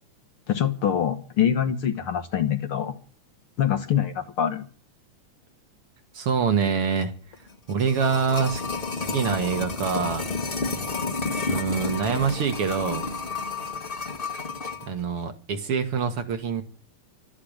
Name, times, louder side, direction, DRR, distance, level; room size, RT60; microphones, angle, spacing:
voice 1, 0.5-2.9 3.6-4.7, left 9 dB, 60° left, 1.6 m, -24 dB
voice 2, 6.1-7.1 7.7-8.6 9.0-10.3 11.5-13.1 14.8-16.6, right 6 dB, 50° right, 2.3 m, -25 dB
sound 1, 7.5-14.9 15.2-15.3, left 3 dB, 25° left, 1.1 m, -31 dB
13.0 x 12.0 x 8.8 m
omnidirectional pair, 3.6 m